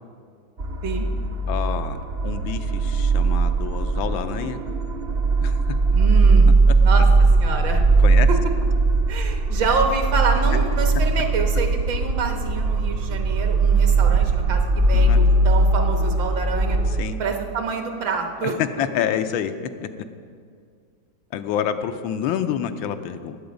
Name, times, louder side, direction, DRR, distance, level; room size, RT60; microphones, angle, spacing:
sound 1, 0.6-17.0, right 3 dB, 85° right, 0.5 m, -19 dB
voice 1, 1.5-2.0 2.2-4.6 5.4-5.6 8.0-8.3 14.9-15.2 16.9-17.2 18.4-18.5 18.8-19.5 19.8-19.9 21.3-23.4, left 9 dB, 90° left, 9 dB, 1.5 m, -27 dB
voice 2, 5.9-6.5 6.8-7.0 7.4-7.8 9.1-16.8 17.2-18.6, right 4 dB, 70° right, 4 dB, 1.8 m, -27 dB
18.5 x 7.9 x 5.1 m, 2.1 s
omnidirectional pair, 2.2 m